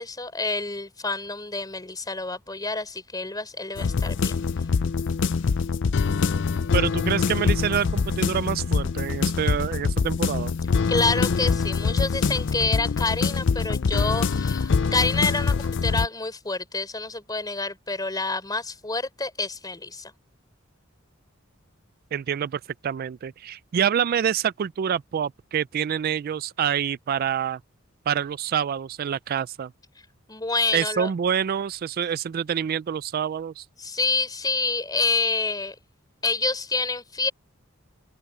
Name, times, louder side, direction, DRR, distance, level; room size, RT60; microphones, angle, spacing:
voice 1, 0.0-4.3 10.9-20.1 30.3-31.1 33.8-35.8 36.2-37.3, left 3 dB, 20° left, 3.5 m, -28 dB
sound 1, 3.8-16.1, left 5 dB, 65° left, 0.5 m, -24 dB
voice 2, 6.7-10.5 22.1-27.6 28.1-29.7 30.7-33.6, right 8 dB, 50° right, 0.3 m, -26 dB
head